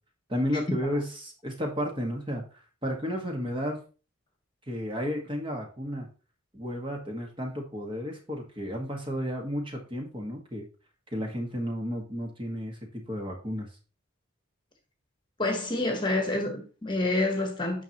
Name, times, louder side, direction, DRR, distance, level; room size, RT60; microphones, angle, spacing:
voice 1, 0.3-2.4 2.8-3.8 4.7-6.1 6.5-10.6 11.1-13.7, equal, 25° right, 1.6 m, -32 dB
voice 2, 15.4-17.8, left 2 dB, 20° left, 1.4 m, -28 dB
9.3 x 6.0 x 3.0 m
head